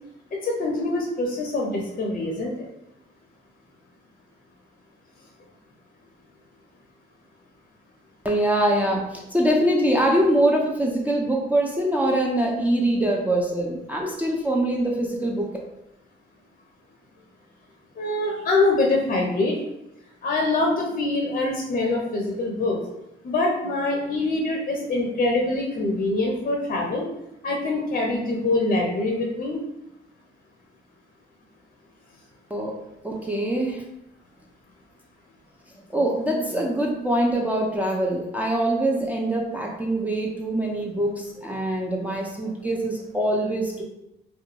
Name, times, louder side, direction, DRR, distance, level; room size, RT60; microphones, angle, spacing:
voice 1, 0.3-2.7 18.0-19.6 20.2-22.8 23.2-27.1 27.4-29.6, left 2 dB, 40° left, -1 dB, 0.6 m, -24 dB
voice 2, 8.2-15.5 32.5-32.7 33.0-33.8 35.9-43.8, right 1 dB, 10° right, -2 dB, 0.4 m, -23 dB
2.4 x 2.2 x 2.8 m, 0.86 s
cardioid pair, 90°, 20 cm